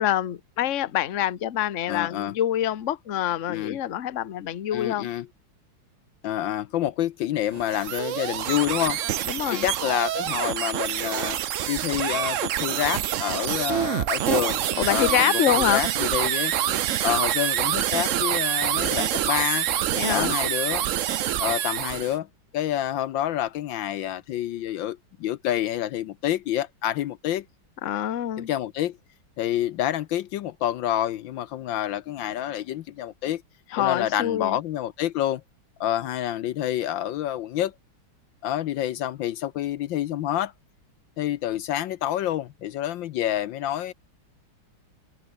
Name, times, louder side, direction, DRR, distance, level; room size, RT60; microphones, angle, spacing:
voice 1, 0.0-5.1 9.3-9.6 14.8-15.8 19.9-20.4 27.8-28.5 33.7-34.6, left 11 dB, 45° left, 1.1 m, -25 dB
voice 2, 1.9-2.3 3.5-3.8 4.7-5.3 6.2-9.0 9.5-11.4 11.7-14.6 14.9-16.5 17.0-19.7 20.1-20.9 21.4-22.3 22.5-27.4 28.4-29.0 29.4-33.4 33.8-35.4 35.8-37.7 38.4-40.5 41.2-43.9, left 12 dB, 75° left, 1.4 m, -28 dB
sound 1, 7.5-22.1, right 11 dB, 80° right, 0.7 m, -26 dB
open air
omnidirectional pair, 2.2 m